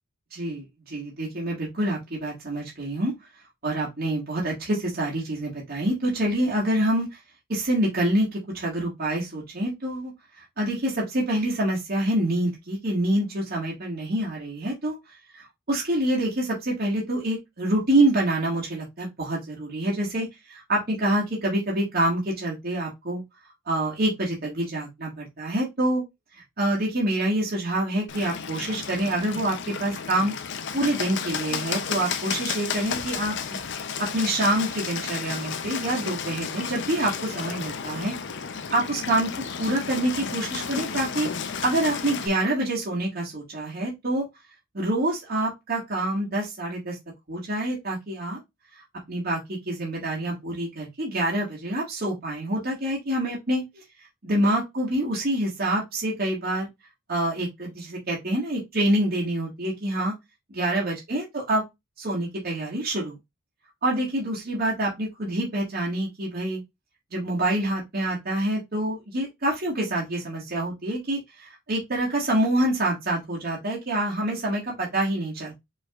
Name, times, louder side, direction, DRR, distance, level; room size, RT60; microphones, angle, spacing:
voice 1, 0.3-3.1 3.6-7.2 7.5-15.0 15.3-23.2 23.7-26.0 26.3-30.3 30.7-33.3 34.1-38.4 38.7-41.3 41.6-44.3 44.7-47.0 47.3-48.4 48.8-53.8 54.2-56.7 57.1-60.1 60.5-61.6 62.0-63.2 63.8-66.6 67.1-75.6, right 1 dB, 45° right, 1.8 m, -26 dB
Bird, 28.1-42.3, left 6 dB, 60° left, 0.6 m, -33 dB
4.7 x 4.4 x 2.4 m
head